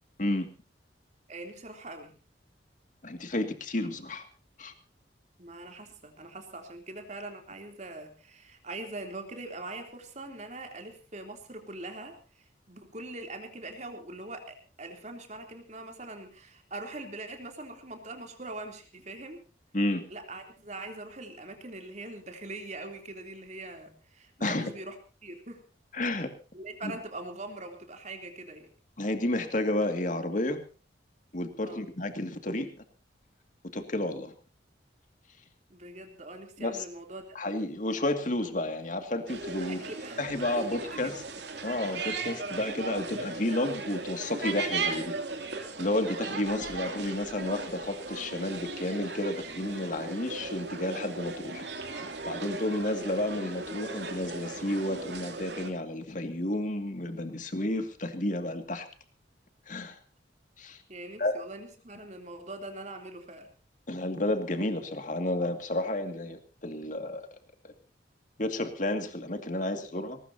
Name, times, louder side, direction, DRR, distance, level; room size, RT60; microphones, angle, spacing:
voice 1, 1.3-2.1 5.4-19.4 20.1-24.9 25.2-25.6 26.5-28.7 31.6-31.9 35.7-37.6 39.6-40.3 40.5-41.1 60.9-63.5, right 2 dB, 40° right, 4 dB, 3.4 m, -42 dB
voice 2, 3.0-4.3 4.6-4.7 19.7-20.0 24.4-24.7 25.9-26.3 26.8-26.9 29.0-30.6 31.3-32.7 33.7-34.3 36.6-36.8 37.3-39.8 40.2-41.2 41.6-45.1 45.8-51.6 52.3-58.9 59.7-60.0 60.6-60.8 61.2-61.3 63.9-67.3 67.6-67.7 68.4-70.2, left 1 dB, 45° left, 7 dB, 2.3 m, -31 dB
sound 1, 39.3-55.7, right 3 dB, 70° right, 2.9 m, -37 dB
21.5 x 19.5 x 2.8 m, 0.35 s
head